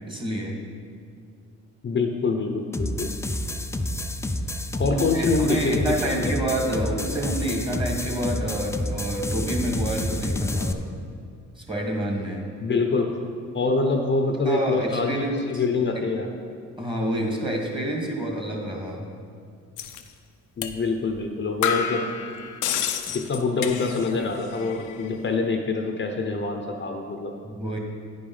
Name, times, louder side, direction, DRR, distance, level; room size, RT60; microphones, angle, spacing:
voice 1, 0.1-0.6 4.8-10.8 11.6-12.5 14.4-15.6 15.9-16.0 16.8-19.1 23.0-23.1 27.4-27.8, right 1 dB, 15° right, 0 dB, 1.7 m, -28 dB
voice 2, 1.8-3.1 4.7-6.3 12.6-13.1 13.5-16.3 20.6-22.0 23.1-27.3, left 3 dB, 35° left, 4 dB, 0.7 m, -25 dB
sound 1, 2.7-10.7, left 1 dB, 10° left, 0.4 m, -29 dB
sound 2, 19.8-20.0 20.6-20.8 21.1-21.2 21.6-24.3 24.5-25.1, left 8 dB, 85° left, 0.6 m, -29 dB
9.5 x 5.2 x 5.5 m, 2.2 s
cardioid pair, 90°, 30 cm